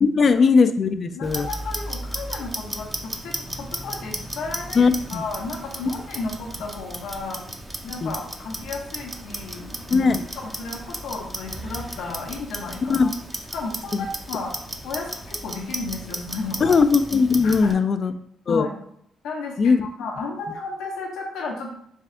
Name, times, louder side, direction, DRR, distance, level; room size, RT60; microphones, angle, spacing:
voice 1, 0.0-1.5 4.8-5.2 8.0-8.1 9.9-10.2 12.9-13.1 13.9-14.1 16.6-18.1 18.5-18.7 19.6-19.8, left 5 dB, 45° left, 10 dB, 0.4 m, -19 dB
voice 2, 1.1-4.8 5.1-7.4 7.9-9.9 10.4-13.1 13.5-14.5 14.8-16.8 17.4-17.8 18.5-18.7 19.2-21.7, left 3 dB, 85° left, 0 dB, 0.8 m, -33 dB
Clock, 1.2-17.7, right 1 dB, 15° right, 0.6 m, -35 dB
3.5 x 3.2 x 3.8 m, 0.72 s
cardioid pair, 90°, 0 cm